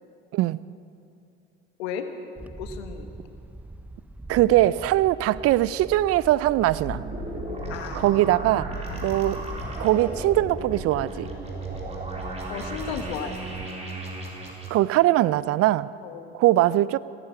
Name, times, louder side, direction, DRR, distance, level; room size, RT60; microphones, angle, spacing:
Wind, 2.4-13.7, right 1 dB, 5° right, 0.5 m, -41 dB
voice 1, 2.6-3.1 7.7-8.0 8.9-9.2 12.5-13.4 16.0-16.3, left 7 dB, 80° left, 7 dB, 1.5 m, -34 dB
voice 2, 4.3-7.0 8.0-8.7 9.0-9.4 9.8-11.3 14.7-15.9 16.3-17.0, right 15 dB, 50° right, 18 dB, 0.5 m, -21 dB
sound 1, 6.5-14.7, right 2 dB, 20° right, 3.9 m, -35 dB
17.0 x 14.0 x 5.7 m, 2.6 s
hypercardioid pair, 75°, 32 cm